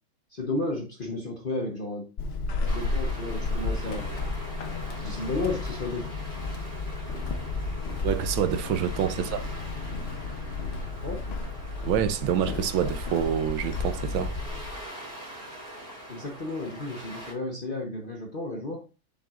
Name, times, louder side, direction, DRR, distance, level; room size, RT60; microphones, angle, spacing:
voice 1, 0.3-2.1 2.7-4.0 5.0-6.0 9.1-9.3 11.0-11.3 16.1-18.8, left 2 dB, 40° left, 0.7 m, -33 dB
Walk footsteps / Squeak, 2.2-14.8, left 3 dB, 90° left, 0.5 m, -32 dB
sound 1, 2.6-17.3, right 1 dB, 30° right, 4.6 m, -43 dB
voice 2, 8.0-9.4 11.8-14.3, right 9 dB, 90° right, 1.5 m, -27 dB
7.5 x 7.2 x 2.4 m
omnidirectional pair, 2.2 m